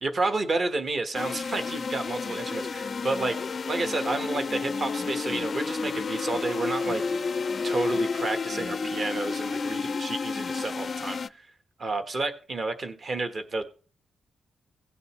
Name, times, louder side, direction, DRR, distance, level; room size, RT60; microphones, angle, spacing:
voice 1, 0.0-3.4 3.7-7.3 7.6-11.5 11.8-13.6, right 3 dB, 35° right, 9 dB, 1.3 m, -30 dB
sound 1, 1.1-11.3, left 4 dB, 30° left, 0.4 m, -31 dB
17.0 x 6.6 x 3.2 m, 0.39 s
wide cardioid pair, 175°, 0 cm